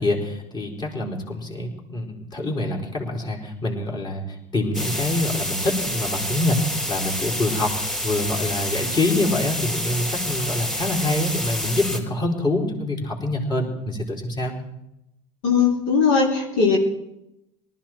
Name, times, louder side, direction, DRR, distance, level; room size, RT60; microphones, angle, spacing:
voice 1, 0.0-7.7 8.0-14.5, left 2 dB, 30° left, -1 dB, 4.2 m, -25 dB
sound 1, 4.7-12.0, equal, 5° left, 4.4 m, -28 dB
voice 2, 15.4-16.8, left 5 dB, 75° left, -1 dB, 3.7 m, -19 dB
19.0 x 14.0 x 4.5 m, 0.84 s
supercardioid pair, 85°, 15 cm